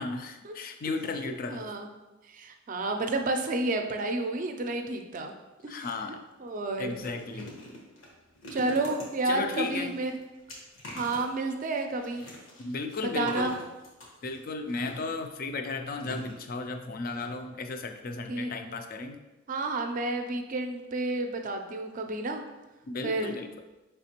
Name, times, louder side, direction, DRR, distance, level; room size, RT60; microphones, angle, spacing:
voice 1, 0.0-1.7 5.7-6.2 6.8-7.6 9.3-9.9 12.6-13.5 14.2-19.2 22.9-23.5, left 3 dB, 45° left, 7 dB, 0.4 m, -35 dB
voice 2, 1.2-1.9 2.3-5.3 5.6-5.9 6.4-6.9 8.5-10.1 10.9-12.2 13.0-13.5 18.3-18.5 19.5-22.4 23.0-23.4, right 2 dB, 40° right, 5 dB, 0.4 m, -30 dB
sound 1, 6.1-6.2 6.5-15.3 16.0-16.8 17.1-17.2 17.5-17.6, left 1 dB, 80° left, 1.3 m, -46 dB
5.0 x 3.3 x 2.8 m, 1.1 s
head